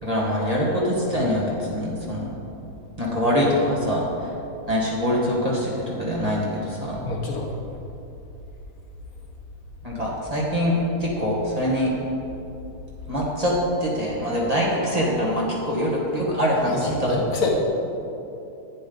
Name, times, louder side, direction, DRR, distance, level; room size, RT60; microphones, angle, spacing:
voice 1, 0.0-2.3 3.0-4.3 4.7-7.0 9.8-11.9 13.1-13.5 13.8-17.1, equal, 25° right, -5 dB, 1.6 m, -24 dB
voice 2, 7.0-7.5 16.6-17.5, left 3 dB, 60° left, 0 dB, 1.5 m, -27 dB
11.0 x 8.7 x 3.9 m, 2.8 s
omnidirectional pair, 1.7 m